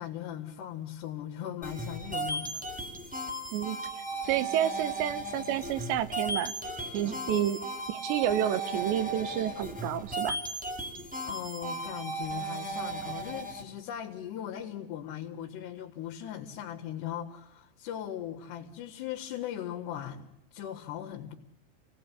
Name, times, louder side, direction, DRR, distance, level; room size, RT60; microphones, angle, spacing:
voice 1, 0.0-2.6 7.1-7.2 11.2-21.4, left 10 dB, 75° left, -2 dB, 3.7 m, -39 dB
sound 1, 1.6-13.6, right 2 dB, 5° right, 2.0 m, -36 dB
voice 2, 3.5-6.5 6.9-7.6 7.9-10.4, right 11 dB, 80° right, 14 dB, 3.4 m, -30 dB
28.5 x 18.5 x 9.9 m, 0.82 s
omnidirectional pair, 5.0 m